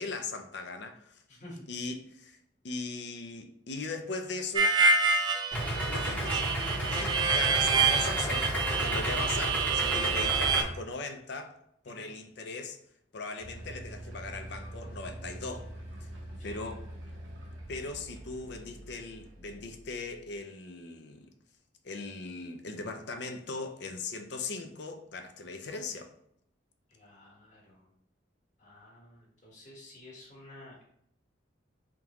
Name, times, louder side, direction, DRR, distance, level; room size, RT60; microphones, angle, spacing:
voice 1, 0.0-1.2 1.7-2.4 2.6-4.8 5.9-6.4 6.9-11.6 11.8-12.8 13.1-15.7 16.0-16.1 16.4-16.8 17.7-21.3 21.8-26.1, left 3 dB, 60° left, 6 dB, 0.5 m, -39 dB
voice 2, 1.3-1.6 11.9-12.1 16.4-16.7 26.9-27.9 28.6-30.8, left 1 dB, 40° left, -5 dB, 1.3 m, -51 dB
Harmonica, 4.6-10.6, right 4 dB, 20° right, 0.3 m, -27 dB
Idling, 5.5-10.6, equal, 10° left, 0.8 m, -32 dB
sound 1, 13.4-20.4, right 1 dB, 80° right, 1.1 m, -45 dB
3.6 x 3.6 x 3.0 m, 0.71 s
head